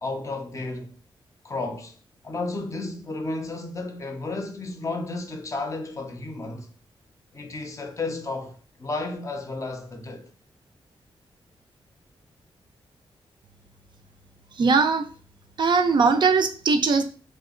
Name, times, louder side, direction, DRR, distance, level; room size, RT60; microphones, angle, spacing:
voice 1, 0.0-1.0 1.4-2.0 2.2-6.7 7.3-10.3, left 2 dB, 35° left, 0.5 m, -32 dB
voice 2, 14.5-15.1 15.6-17.0, right 4 dB, 50° right, 0.4 m, -20 dB
2.8 x 2.2 x 3.6 m
wide cardioid pair, 125°, 10 cm